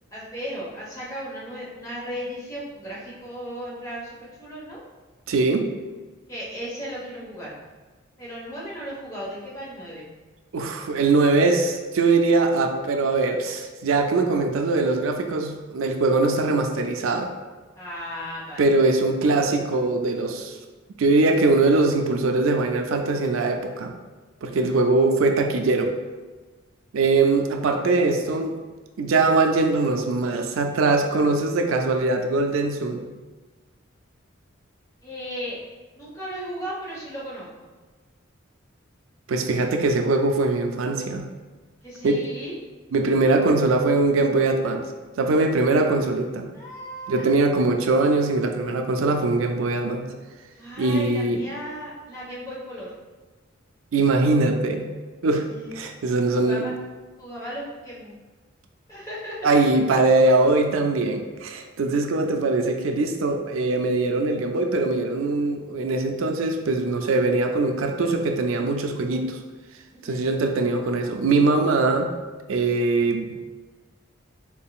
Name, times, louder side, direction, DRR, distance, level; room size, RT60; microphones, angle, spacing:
voice 1, 0.1-4.8 6.3-7.5 8.2-10.1 17.7-18.7 24.5-24.8 35.0-35.6 35.9-37.7 41.8-42.5 46.5-47.2 47.6-47.7 50.6-52.9 55.5-55.7 56.2-56.7 57.2-58.2 58.9-59.6 69.9-70.3, equal, 15° left, -7 dB, 1.2 m, -36 dB
voice 2, 5.3-5.7 10.5-17.3 18.6-20.6 21.0-24.0 24.4-25.9 26.9-28.6 29.0-33.0 39.3-41.3 42.0-42.2 42.9-44.9 45.2-46.5 47.1-50.1 50.8-51.4 53.9-54.9 55.2-55.5 55.7-56.7 59.4-69.4 70.0-72.1 72.5-73.3, right 3 dB, 85° right, 5 dB, 0.4 m, -22 dB
4.6 x 3.6 x 2.4 m, 1.3 s
head